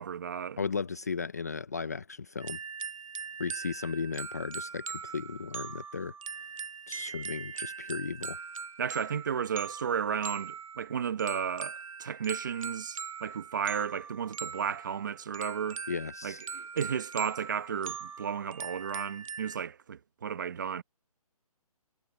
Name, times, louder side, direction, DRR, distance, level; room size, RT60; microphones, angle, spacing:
voice 1, 0.0-0.6 8.8-15.8 16.2-20.8, right 7 dB, 30° right, 1.2 m, -33 dB
voice 2, 0.6-2.6 3.4-6.1 6.9-8.4 15.9-16.4, left 5 dB, 25° left, 0.5 m, -35 dB
sound 1, 2.4-19.6, right 6 dB, 60° right, 0.6 m, -41 dB
hypercardioid pair, 175°, 19 cm